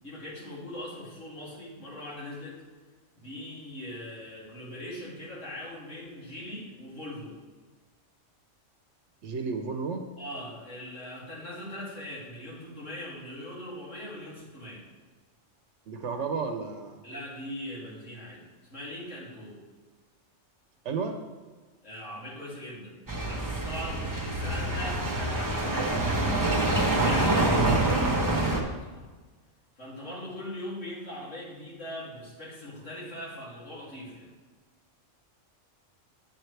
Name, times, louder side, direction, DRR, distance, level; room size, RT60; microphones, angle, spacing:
voice 1, 0.0-2.6 3.1-7.3 10.2-14.8 17.0-19.6 21.8-26.0 26.8-29.0 29.8-34.3, left 1 dB, 80° left, -6 dB, 3.0 m, -40 dB
voice 2, 9.2-10.0 15.9-17.0 20.8-21.2, right 5 dB, 70° right, 5 dB, 1.0 m, -32 dB
sound 1, 23.1-28.6, right 2 dB, 15° right, 0.9 m, -26 dB
9.1 x 7.5 x 3.3 m, 1.3 s
omnidirectional pair, 1.3 m